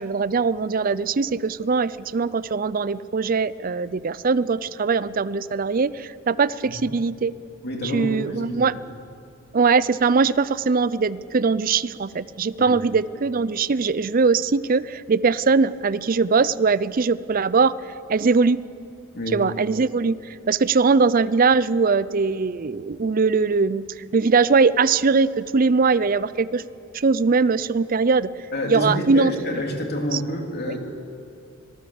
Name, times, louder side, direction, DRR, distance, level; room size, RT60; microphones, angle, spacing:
voice 1, 0.0-7.3 7.9-8.7 9.5-17.7 18.1-18.6 19.3-23.8 24.1-26.6 26.9-28.3 28.7-29.6 30.1-30.2 30.7-30.8, right 4 dB, 45° right, 17 dB, 0.5 m, -21 dB
voice 2, 7.6-8.6 12.6-12.8 19.1-19.4 28.5-30.8, equal, 50° left, 1 dB, 3.1 m, -28 dB
25.0 x 18.5 x 7.1 m, 2.5 s
head